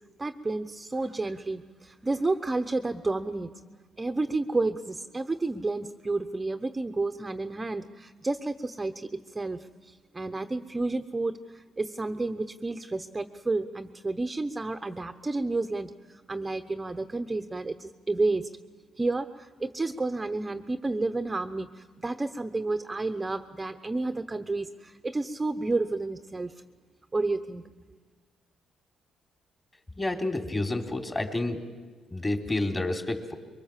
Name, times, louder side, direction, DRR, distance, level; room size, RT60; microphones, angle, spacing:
voice 1, 0.2-3.5 4.0-9.1 9.3-18.5 19.0-26.5 27.1-27.7, right 2 dB, 20° right, 7 dB, 1.0 m, -31 dB
voice 2, 30.0-31.6 32.1-33.4, left 2 dB, 20° left, 3 dB, 3.4 m, -29 dB
25.5 x 23.0 x 7.4 m, 1.5 s
cardioid pair, 90°, 0 cm